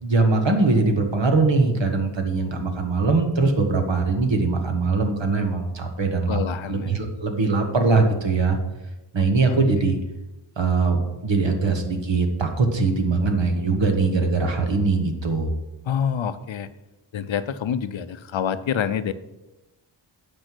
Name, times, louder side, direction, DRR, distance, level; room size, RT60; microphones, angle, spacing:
voice 1, 0.0-6.4 6.7-8.6 9.1-10.0 10.6-15.5, right 3 dB, 65° right, 4 dB, 1.5 m, -21 dB
voice 2, 6.3-7.0 9.4-9.6 15.9-16.7 17.1-19.1, left 8 dB, 75° left, 13 dB, 0.7 m, -27 dB
8.8 x 5.6 x 6.1 m, 1.0 s
wide cardioid pair, 85°, 47 cm